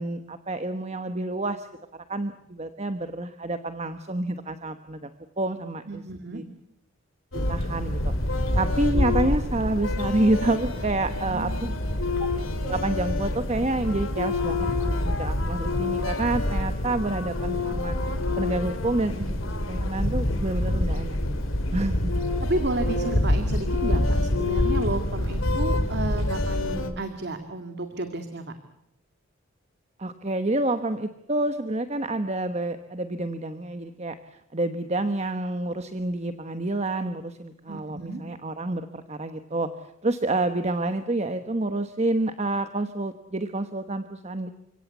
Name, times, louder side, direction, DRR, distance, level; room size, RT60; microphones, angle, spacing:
voice 1, 0.0-1.7 2.1-5.1 5.4-6.0 6.3-6.4 7.3-11.5 12.6-14.7 15.0-17.9 18.4-19.4 19.7-21.3 21.7-22.1 30.0-34.2 34.5-39.7 40.0-44.5, right 2 dB, 35° right, 9 dB, 1.2 m, -28 dB
voice 2, 5.9-6.4 11.2-11.8 22.4-28.5 37.7-38.2, right 2 dB, 55° right, 7 dB, 2.1 m, -32 dB
sound 1, 7.3-26.9, left 1 dB, 80° left, 3.0 m, -26 dB
30.0 x 17.5 x 8.3 m, 0.81 s
head